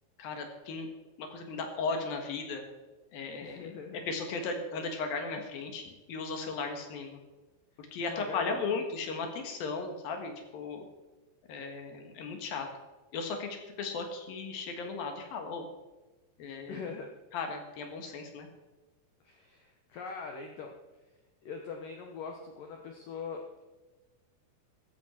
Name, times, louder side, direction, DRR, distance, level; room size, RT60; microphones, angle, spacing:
voice 1, 0.2-0.9 1.2-2.6 3.1-3.7 4.1-7.2 7.8-10.8 11.5-12.7 13.1-15.7 16.4-16.8 17.3-18.5, left 4 dB, 60° left, 4 dB, 2.8 m, -36 dB
voice 2, 3.4-4.1 8.0-8.6 16.7-17.1 19.2-20.7 21.4-23.7, left 5 dB, 80° left, 3 dB, 1.9 m, -42 dB
14.5 x 14.0 x 4.3 m, 1.1 s
omnidirectional pair, 5.6 m